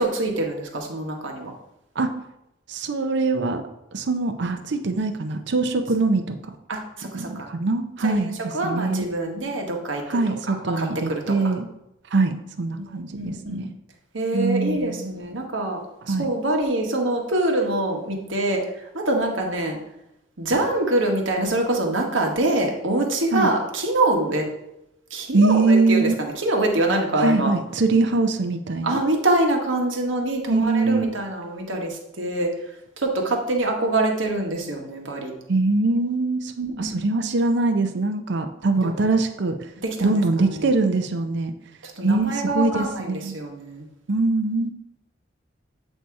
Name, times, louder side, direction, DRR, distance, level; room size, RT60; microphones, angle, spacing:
voice 1, 0.0-1.5 6.7-7.5 8.0-8.2 8.5-10.2 10.8-11.5 12.8-12.9 13.1-13.7 14.1-18.6 18.9-19.8 20.4-24.4 25.1-27.5 28.8-32.5 33.0-35.3 36.7-37.1 38.8-38.9 39.8-40.2 40.5-40.7 42.0-43.8, right 2 dB, 80° right, 1 dB, 1.1 m, -25 dB
voice 2, 2.7-3.6 3.9-6.5 7.1-9.1 10.1-11.7 12.1-13.7 14.3-15.1 16.1-16.3 23.3-23.5 25.3-26.2 27.2-29.0 30.5-31.1 35.5-39.7 40.0-41.5 42.0-43.4 44.1-44.7, right 3 dB, 65° right, 7 dB, 0.6 m, -23 dB
8.0 x 2.7 x 4.6 m, 0.86 s
head